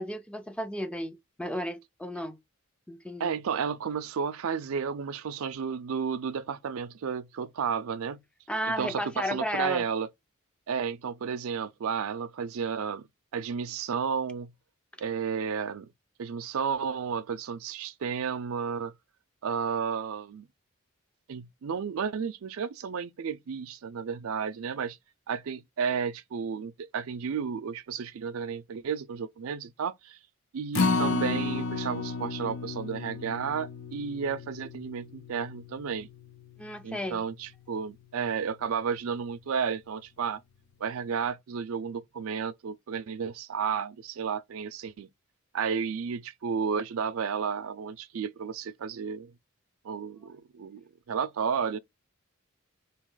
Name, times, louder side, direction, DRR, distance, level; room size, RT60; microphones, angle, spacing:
voice 1, 0.0-2.4 2.9-3.3 8.5-9.8 36.6-37.2, equal, 5° left, 0.4 m, -33 dB
voice 2, 3.2-8.2 8.7-10.1 10.7-13.0 13.3-14.5 15.0-15.9 16.2-18.9 19.4-20.5 21.3-25.0 25.3-30.2 30.5-36.1 36.8-40.4 40.8-45.1 45.5-49.3 49.8-51.8, right 6 dB, 75° right, 0.4 m, -32 dB
Acoustic guitar, 30.7-37.0 37.4-37.5 38.0-38.1, left 3 dB, 75° left, 0.6 m, -32 dB
4.1 x 2.8 x 3.8 m
head